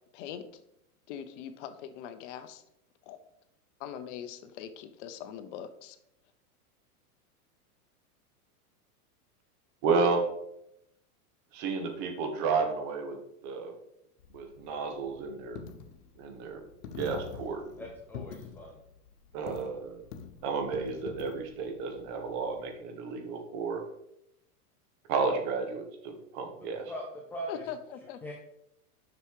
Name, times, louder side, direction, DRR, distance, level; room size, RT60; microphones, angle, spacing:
voice 1, 0.1-0.4 1.1-2.6 3.1-3.2 3.8-6.0 27.5-28.3, left 9 dB, 50° left, 10 dB, 0.8 m, -42 dB
voice 2, 9.8-10.2 11.5-13.2 13.4-13.7 14.3-15.6 16.2-16.6 17.0-17.6 19.3-20.0 20.4-23.8 25.1-26.9, right 4 dB, 45° right, 5 dB, 1.6 m, -32 dB
Coin (dropping), 14.2-22.7, left 6 dB, 75° left, 1.2 m, -46 dB
voice 3, 17.8-18.8 26.6-27.0 27.3-27.7 28.2-28.3, equal, 5° left, 0 dB, 0.4 m, -41 dB
6.9 x 6.0 x 4.8 m, 0.79 s
supercardioid pair, 135°, 46 cm